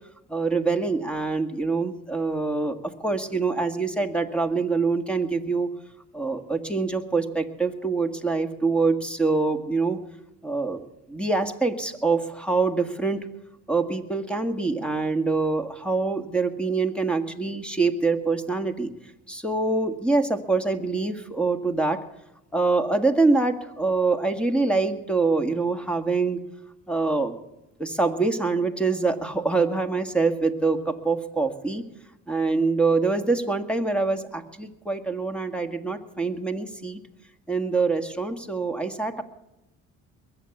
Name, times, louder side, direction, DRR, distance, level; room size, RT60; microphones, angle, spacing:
voice 1, 0.3-5.7 6.1-10.0 10.4-13.3 13.7-18.9 19.3-22.0 22.5-26.4 26.9-27.4 27.8-31.8 32.3-37.0 37.5-39.2, right 3 dB, 5° left, 8 dB, 1.8 m, -25 dB
21.5 x 8.1 x 7.2 m, 0.89 s
cardioid pair, 85°, 33 cm